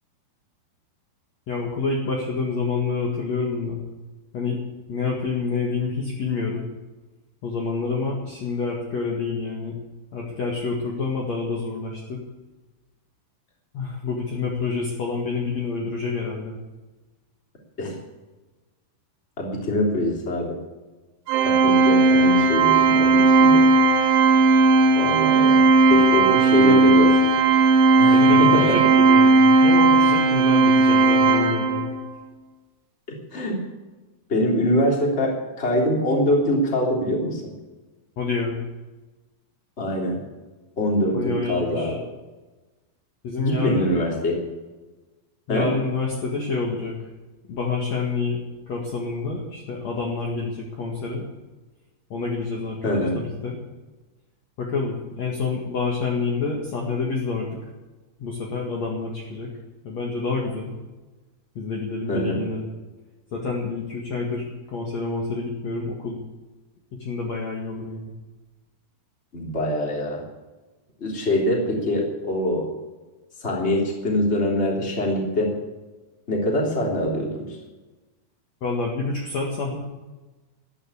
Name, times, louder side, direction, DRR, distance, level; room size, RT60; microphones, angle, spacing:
voice 1, 1.5-3.8 4.3-4.6 4.9-6.7 7.4-9.8 10.1-12.2 13.7-16.6 26.3-26.8 28.1-31.9 38.2-38.6 41.1-42.0 43.2-44.0 45.5-46.9 47.5-48.4 48.7-51.3 52.1-53.6 54.6-57.6 58.2-59.5 59.8-60.8 61.6-62.7 63.3-66.2 66.9-68.1 78.6-79.8, left 4 dB, 50° left, -2 dB, 2.7 m, -28 dB
voice 2, 19.4-20.6 21.4-23.6 24.9-25.6 25.9-27.1 28.0-28.8 33.1-33.5 34.3-37.4 39.8-40.2 40.8-42.0 43.4-44.4 45.5-45.7 52.8-53.2 62.1-62.4 69.3-70.2 71.0-72.6 73.4-75.5 76.3-77.5, left 1 dB, 15° left, -1 dB, 3.1 m, -23 dB
Organ, 21.3-32.0, right 3 dB, 80° right, 3.3 m, -16 dB
14.5 x 10.5 x 8.6 m, 1.2 s
omnidirectional pair, 4.8 m